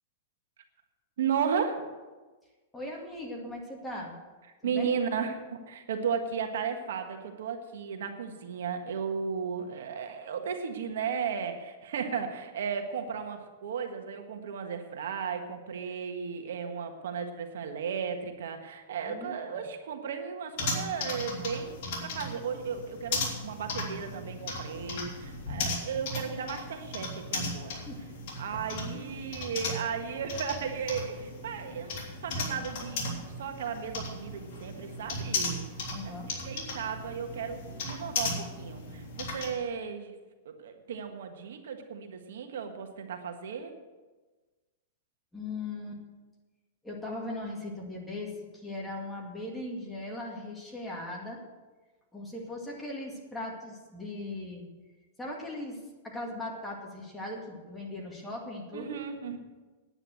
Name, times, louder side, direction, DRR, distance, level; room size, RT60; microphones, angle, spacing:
voice 1, 1.2-1.8 4.6-27.8 28.4-31.9 32.2-35.6 36.0-40.1 40.4-43.7 58.7-59.4, right 6 dB, 80° right, 5 dB, 1.6 m, -35 dB
voice 2, 2.7-4.1 4.6-4.9 19.0-19.6 27.9-28.0 28.9-29.1 35.9-36.3 45.3-46.0 46.8-51.4 52.1-54.6 55.2-55.8 56.0-59.0, left 2 dB, 5° left, -2 dB, 2.1 m, -39 dB
sound 1, 20.6-39.5, left 2 dB, 50° left, 3.3 m, -36 dB
9.8 x 9.1 x 7.7 m, 1.3 s
supercardioid pair, 160°, 0 cm